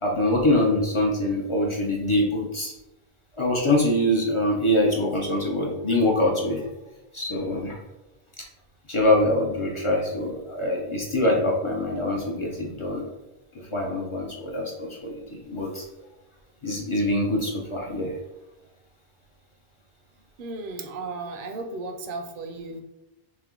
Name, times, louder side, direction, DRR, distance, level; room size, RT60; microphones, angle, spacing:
voice 1, 0.0-2.7 3.4-6.7 7.1-7.8 8.9-13.1 13.7-15.8 16.6-18.1, left 1 dB, 40° left, -2 dB, 0.5 m, -24 dB
voice 2, 20.4-22.8, right 3 dB, 60° right, 5 dB, 0.7 m, -35 dB
3.4 x 2.7 x 3.7 m, 0.98 s
omnidirectional pair, 1.1 m